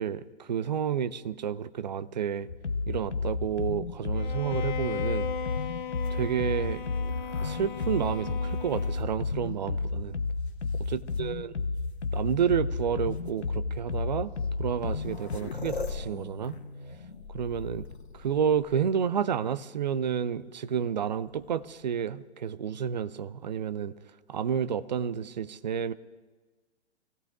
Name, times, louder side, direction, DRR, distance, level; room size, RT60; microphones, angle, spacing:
voice 1, 0.0-2.5 2.9-5.3 6.1-6.8 7.4-10.2 10.7-11.5 12.1-14.3 14.6-16.5 17.3-17.8 18.1-23.9 24.3-25.9, right 8 dB, 40° right, 15 dB, 0.5 m, -30 dB
sound 1, 2.5-15.4, left 4 dB, 85° left, 0.7 m, -32 dB
Bowed string instrument, 4.1-9.3, left 7 dB, 45° left, 0.5 m, -37 dB
sound 2, 5.9-9.8 10.5-11.2 12.3-12.4 13.1-13.3 14.4-14.5 14.7-19.2 21.1-21.8, left 4 dB, 70° left, 1.5 m, -43 dB
24.5 x 16.5 x 2.4 m, 1.3 s
figure-of-eight pair, 125°, 34 cm